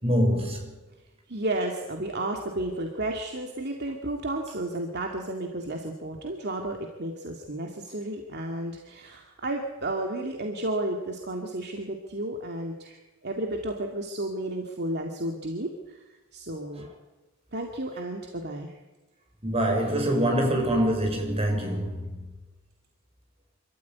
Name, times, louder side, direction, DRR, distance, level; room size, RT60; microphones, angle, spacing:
voice 1, 0.0-0.6 19.4-22.0, equal, 30° right, 6.5 m, -24 dB
voice 2, 1.3-15.7 16.3-16.9 17.5-18.7, right 1 dB, 50° right, 2.4 m, -32 dB
26.5 x 14.0 x 9.5 m
head